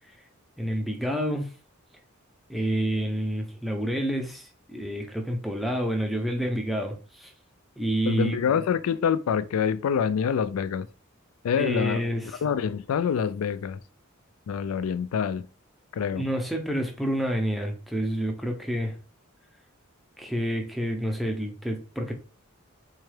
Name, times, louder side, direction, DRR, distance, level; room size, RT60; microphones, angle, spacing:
voice 1, 0.6-1.5 2.5-7.3 7.8-8.4 11.6-12.4 16.1-19.0 20.2-22.1, equal, ahead, 0.5 m, -28 dB
voice 2, 8.0-10.9 11.4-12.0 12.4-13.8 14.5-15.5 15.9-16.3, left 7 dB, 80° left, 0.3 m, -26 dB
3.9 x 2.3 x 3.2 m
head